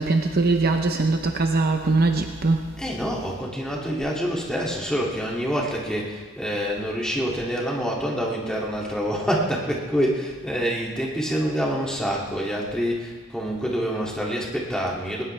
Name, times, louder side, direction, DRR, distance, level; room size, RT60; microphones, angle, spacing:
voice 1, 0.0-2.7, right 3 dB, 45° right, 4 dB, 0.8 m, -21 dB
voice 2, 2.8-15.2, equal, 5° left, -4 dB, 2.4 m, -26 dB
20.0 x 19.0 x 3.4 m, 1.5 s
head